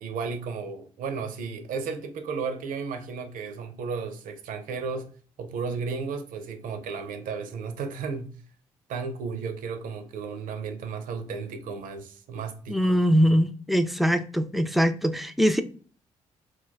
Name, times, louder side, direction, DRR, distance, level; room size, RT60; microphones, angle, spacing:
voice 1, 0.0-5.1 5.4-8.3 8.9-12.9, right 5 dB, 65° right, 0.5 m, -34 dB
voice 2, 12.7-15.6, equal, ahead, 0.3 m, -22 dB
2.3 x 2.2 x 3.9 m
hypercardioid pair, 45°, 15 cm